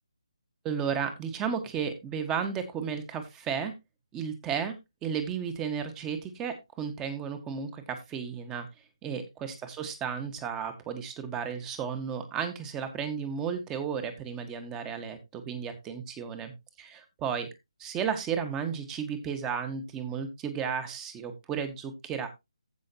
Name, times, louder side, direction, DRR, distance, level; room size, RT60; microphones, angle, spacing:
voice 1, 0.6-3.7 4.1-4.7 5.0-8.7 9.0-16.5 16.8-17.5 17.8-22.3, right 7 dB, 15° right, 9 dB, 1.5 m, -33 dB
15.0 x 5.7 x 2.9 m, 0.22 s
figure-of-eight pair, 155°, 3 cm